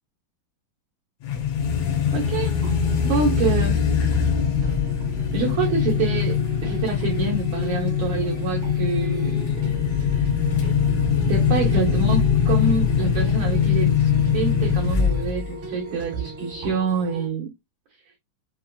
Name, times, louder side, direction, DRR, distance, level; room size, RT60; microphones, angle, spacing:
sound 1, 1.2-15.5, left 7 dB, 75° left, 1.6 m, -22 dB
voice 1, 2.1-2.5 3.0-3.8 5.3-6.4 6.6-9.7 11.3-17.5, right 4 dB, 75° right, 1.7 m, -26 dB
sound 2, 2.2-17.3, right 3 dB, 55° right, 2.0 m, -37 dB
5.8 x 2.4 x 2.2 m
omnidirectional pair, 4.3 m